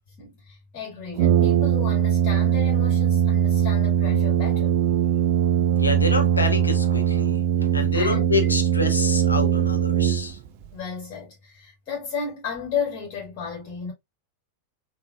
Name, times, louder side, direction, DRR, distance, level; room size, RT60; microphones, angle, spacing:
voice 1, 0.2-4.8 7.9-8.5 10.7-13.9, left 6 dB, 35° left, 2.2 m, -33 dB
Brass instrument, 1.2-10.7, right 9 dB, 45° right, 0.3 m, -21 dB
voice 2, 5.8-10.4, left 3 dB, 80° left, 0.8 m, -27 dB
3.6 x 2.5 x 2.5 m
figure-of-eight pair, 90°, 0 cm